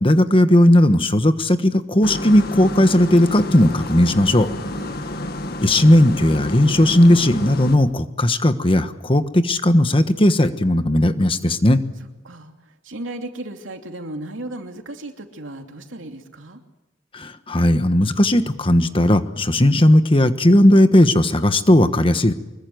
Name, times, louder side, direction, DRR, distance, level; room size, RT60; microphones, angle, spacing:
voice 1, 0.0-4.5 5.6-11.8 17.1-22.3, left 1 dB, 30° left, 10 dB, 1.3 m, -16 dB
sound 1, 2.0-7.8, left 1 dB, 55° left, 2.0 m, -29 dB
voice 2, 12.8-16.6, right 1 dB, 90° right, 4 dB, 2.9 m, -35 dB
25.0 x 22.0 x 7.9 m, 1.0 s
head